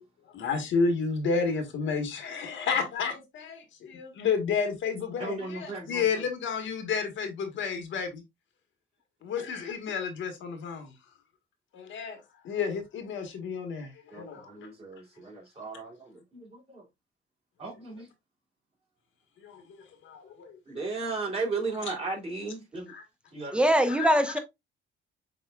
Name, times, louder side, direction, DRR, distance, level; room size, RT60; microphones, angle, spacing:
voice 1, 0.3-8.2 9.2-10.9 11.7-12.2 12.4-14.7 19.4-19.6 20.0-20.5 22.9-23.0 24.0-24.1, left 5 dB, 75° left, 1.3 m, -31 dB
voice 2, 5.2-6.1 14.1-16.8 17.6-18.1 20.7-22.9 23.3-23.6, right 3 dB, 30° right, 2.9 m, -35 dB
voice 3, 23.5-24.4, equal, 5° right, 0.8 m, -22 dB
7.0 x 3.1 x 2.3 m
cardioid pair, 90°, 20 cm